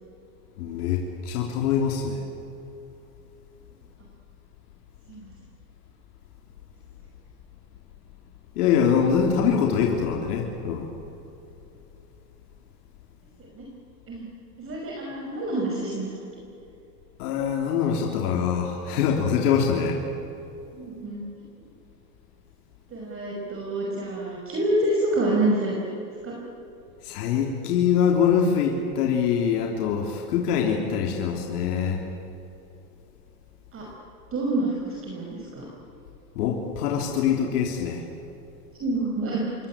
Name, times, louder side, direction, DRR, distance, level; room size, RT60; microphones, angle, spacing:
voice 1, 0.6-2.2 8.5-10.9 17.2-20.0 27.0-32.0 36.3-38.0, left 7 dB, 70° left, 1 dB, 3.6 m, -24 dB
voice 2, 14.6-16.1 20.7-21.2 22.9-26.3 33.7-33.9 34.3-35.7 38.8-39.5, right 1 dB, 25° right, -1 dB, 5.7 m, -27 dB
28.0 x 23.5 x 8.8 m, 2.9 s
supercardioid pair, 125°, 47 cm